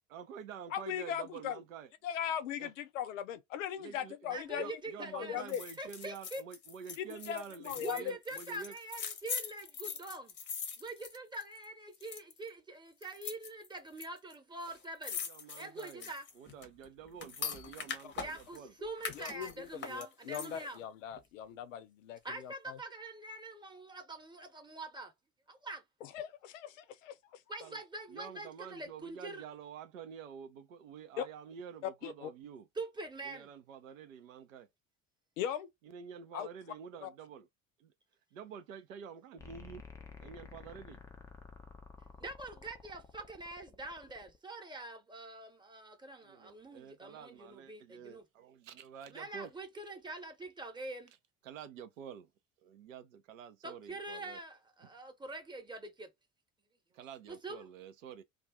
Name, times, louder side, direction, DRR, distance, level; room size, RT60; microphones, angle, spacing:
voice 1, 0.1-1.9 2.6-2.7 3.8-8.7 15.2-16.1 16.4-18.7 27.6-27.8 28.1-32.7 33.3-34.7 35.9-37.5 37.8-37.9 38.3-39.8 40.2-41.0 46.2-49.5 51.4-52.3 52.6-54.4 56.9-58.2, right 7 dB, 70° right, 0.6 m, -48 dB
voice 2, 0.7-1.6 2.0-4.8 5.1-5.6 7.0-8.1 18.0-18.1 19.1-22.8 26.0-27.4 31.2-31.3 31.8-32.3 35.4-35.7 36.3-36.5 37.0-37.1, left 10 dB, 65° left, 0.6 m, -39 dB
voice 3, 4.3-6.4 7.8-10.3 10.8-15.2 15.5-16.3 18.2-20.8 22.2-25.1 25.5-25.8 27.5-29.4 32.7-33.5 42.2-48.3 49.1-51.1 53.6-56.1 57.3-57.7, right 2 dB, 10° right, 0.9 m, -44 dB
sound 1, 5.5-11.7 11.9-12.5 13.0-14.1 14.3-14.4 14.6-18.6 19.0-20.8 21.1-21.2, left 6 dB, 25° left, 0.7 m, -42 dB
sound 2, 39.4-44.4, left 4 dB, 10° left, 0.3 m, -52 dB
2.4 x 2.3 x 3.5 m
figure-of-eight pair, 60°, 42 cm